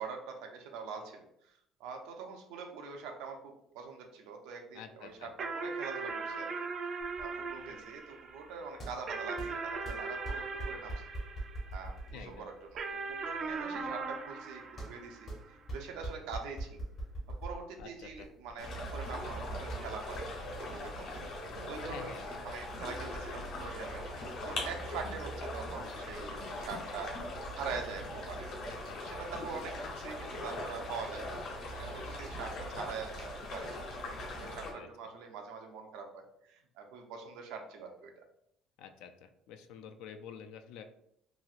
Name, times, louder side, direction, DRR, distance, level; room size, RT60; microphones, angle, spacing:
voice 1, 0.0-1.5 1.8-6.5 7.2-11.0 11.7-16.8 17.4-20.2 20.5-21.1 21.4-22.1 22.4-24.0 24.4-27.2 27.5-33.7 34.0-38.1, right 5 dB, 90° right, 3 dB, 0.6 m, -44 dB
voice 2, 4.7-5.3 12.1-12.5 17.8-18.3 21.9-22.3 28.7-29.2 34.4-34.9 38.8-41.0, left 7 dB, 75° left, 7 dB, 0.3 m, -49 dB
sound 1, 5.4-12.1 12.8-15.6, right 4 dB, 35° right, 0.3 m, -39 dB
sound 2, 7.0-23.2, right 2 dB, 30° left, 0.7 m, -45 dB
sound 3, 18.6-34.7, left 1 dB, 50° left, 1.3 m, -40 dB
3.0 x 2.7 x 2.4 m, 0.74 s
cardioid pair, 170°, 0 cm